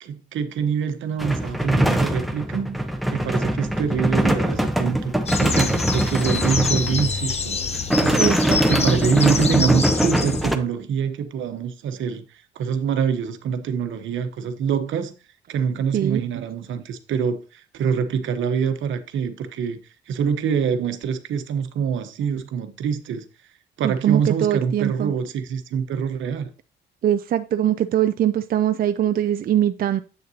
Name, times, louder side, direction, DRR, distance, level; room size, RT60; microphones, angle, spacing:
voice 1, 0.0-2.8 3.1-8.3 8.7-15.1 15.5-23.3 23.8-26.5, right 7 dB, 75° right, 1.0 m, -25 dB
sound 1, 1.2-7.3 7.7-10.6, right 1 dB, ahead, 0.8 m, -22 dB
sound 2, 5.3-10.5, left 5 dB, 30° left, 0.7 m, -27 dB
voice 2, 8.2-8.9 15.9-16.2 23.8-25.1 27.0-30.0, right 11 dB, 50° right, 0.4 m, -22 dB
7.9 x 6.6 x 2.8 m
cardioid pair, 90°, 20 cm